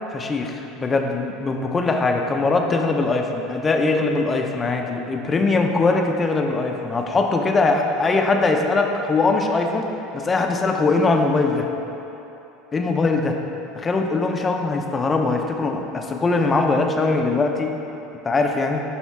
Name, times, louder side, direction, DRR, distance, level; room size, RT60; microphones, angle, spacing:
voice 1, 0.1-11.7 12.7-13.4 13.8-17.8 18.2-18.8, left 3 dB, 20° left, 3 dB, 0.6 m, -21 dB
10.0 x 3.5 x 4.7 m, 3.0 s
supercardioid pair, 110°, 0 cm